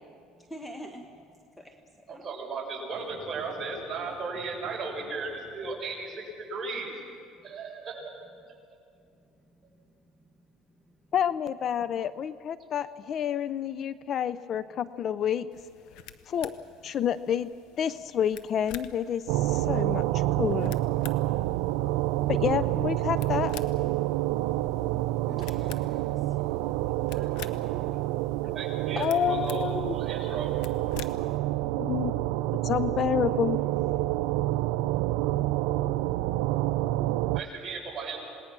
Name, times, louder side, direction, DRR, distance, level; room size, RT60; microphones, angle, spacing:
voice 1, 0.4-2.3 7.4-7.6 8.9-11.1 24.1-24.8 25.2-26.7, equal, 5° left, 3 dB, 1.3 m, -52 dB
voice 2, 2.1-6.9 7.4-8.1 26.8-27.3 28.5-30.5 37.3-38.2, right 4 dB, 30° right, -2 dB, 6.8 m, -36 dB
sound 1, 2.9-6.4, right 1 dB, 10° right, 7.1 m, -54 dB
voice 3, 11.1-15.5 16.3-16.5 16.8-17.5 17.8-20.8 22.3-23.5 29.0-29.9 31.8-32.1 32.6-33.6, left 9 dB, 45° left, 15 dB, 0.5 m, -29 dB
sound 2, 15.5-31.4, left 10 dB, 75° left, 1.0 m, -49 dB
sound 3, 19.3-37.4, right 16 dB, 85° right, 0.5 m, -28 dB
27.5 x 19.5 x 6.1 m, 2.3 s
cardioid pair, 130°, 0 cm